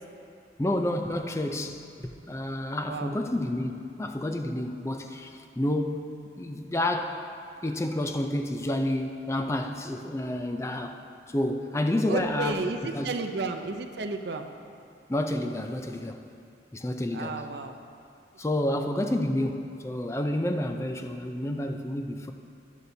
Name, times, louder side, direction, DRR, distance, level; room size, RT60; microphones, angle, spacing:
voice 1, 0.6-7.2 7.6-11.0 11.3-13.1 15.1-16.2 16.7-17.5 18.4-22.3, left 1 dB, 15° left, 5 dB, 0.4 m, -30 dB
voice 2, 2.8-3.2 12.1-14.5 17.1-17.8, right 3 dB, 70° right, 6 dB, 0.6 m, -32 dB
11.0 x 11.0 x 2.7 m, 2.4 s
head